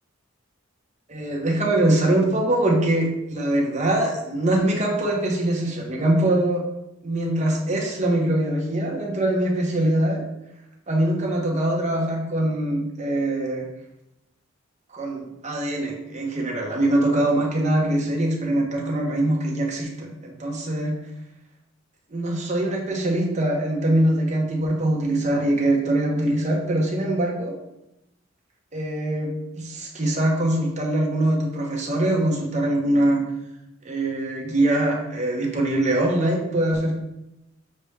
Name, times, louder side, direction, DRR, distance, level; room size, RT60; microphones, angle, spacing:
voice 1, 1.1-6.6 7.0-10.2 10.9-13.7 14.9-21.0 22.1-27.5 28.7-33.2 33.8-36.9, right 1 dB, 35° right, -1 dB, 0.8 m, -23 dB
6.6 x 2.3 x 3.2 m, 0.88 s
head